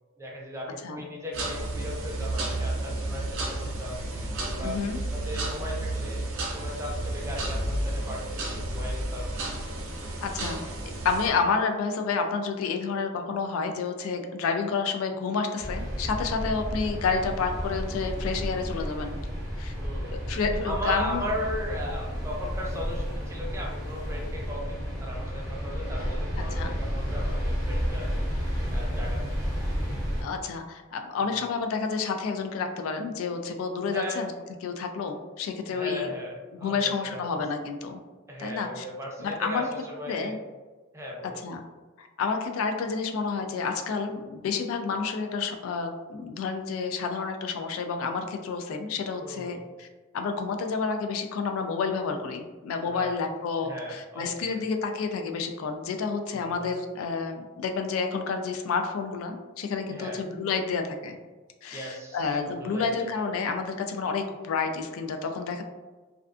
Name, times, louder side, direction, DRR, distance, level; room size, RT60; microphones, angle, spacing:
voice 1, 0.2-4.0 4.4-4.8 5.1-6.2 6.5-9.3 14.4-14.5 19.8-20.2 20.6-28.1 28.7-29.3 31.3-31.4 33.9-34.3 35.7-37.4 38.3-40.4 40.9-41.4 49.2-49.6 52.8-53.2 53.6-54.6 56.3-56.7 59.9-60.2 61.7-63.3, left 1 dB, 15° right, -2 dB, 0.4 m, -37 dB
sound 1, 1.3-11.3, right 2 dB, 75° right, 0.5 m, -32 dB
voice 2, 4.6-5.0 10.2-10.6 11.0-19.2 19.6-19.7 20.1-21.3 26.5-26.8 30.2-34.3 34.6-36.1 36.6-38.0 38.4-38.8 39.2-39.7 40.1-40.4 41.4-41.6 42.0-49.9 50.1-61.2 61.6-65.6, left 5 dB, 75° left, 6 dB, 0.3 m, -30 dB
sound 2, 15.6-30.2, equal, 20° left, 1.1 m, -31 dB
2.4 x 2.3 x 2.3 m, 1.3 s
head